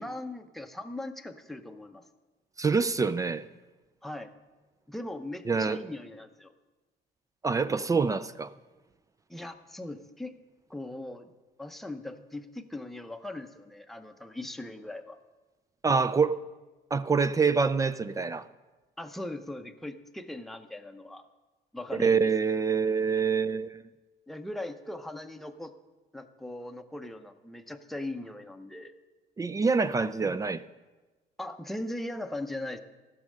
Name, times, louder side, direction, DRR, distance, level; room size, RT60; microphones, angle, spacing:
voice 1, 0.0-2.1 4.0-4.3 4.9-6.5 9.3-10.3 10.7-11.3 11.6-15.2 19.0-21.3 21.7-22.3 24.3-25.7 26.1-28.9 31.4-32.8, left 1 dB, ahead, 6 dB, 0.7 m, -39 dB
voice 2, 2.6-3.4 5.5-5.8 7.4-8.5 15.8-16.4 16.9-18.5 21.9-23.8 29.4-30.6, right 5 dB, 20° right, 15 dB, 0.3 m, -26 dB
14.0 x 6.3 x 6.5 m, 1.2 s
cardioid pair, 110°, 17 cm